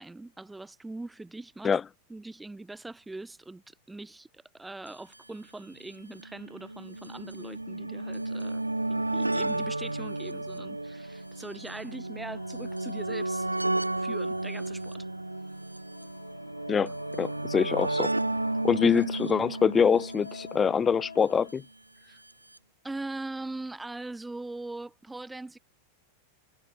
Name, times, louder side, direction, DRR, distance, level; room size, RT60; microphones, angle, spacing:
voice 1, 0.0-1.7 2.1-8.6 8.9-13.5 14.0-15.0 18.9-19.1 22.0-22.2 22.8-25.6, right 2 dB, 5° right, 2.0 m, -41 dB
sound 1, 4.9-5.0 5.1-5.2 6.1-21.3 22.3-22.4 22.6-22.7, right 2 dB, 85° right, 2.7 m, -33 dB
sound 2, 10.6-21.5, left 7 dB, 70° left, 4.1 m, -49 dB
voice 2, 16.7-18.1 18.6-21.6, left 6 dB, 20° left, 0.6 m, -25 dB
figure-of-eight pair, 90°, 0 cm